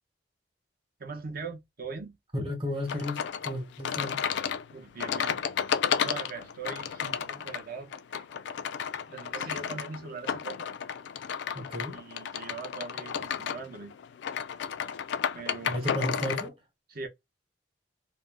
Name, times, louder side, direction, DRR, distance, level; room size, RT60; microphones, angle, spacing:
voice 1, 1.0-2.2 4.7-5.4 6.0-8.3 9.1-10.7 11.9-13.9 15.3-16.1 16.9-17.1, right 4 dB, 55° right, 0.7 m, -41 dB
voice 2, 2.3-4.2 11.5-12.0 15.7-16.6, left 1 dB, 30° right, 1.1 m, -33 dB
sound 1, 2.9-16.5, left 8 dB, 70° left, 0.3 m, -33 dB
2.6 x 2.0 x 3.2 m
head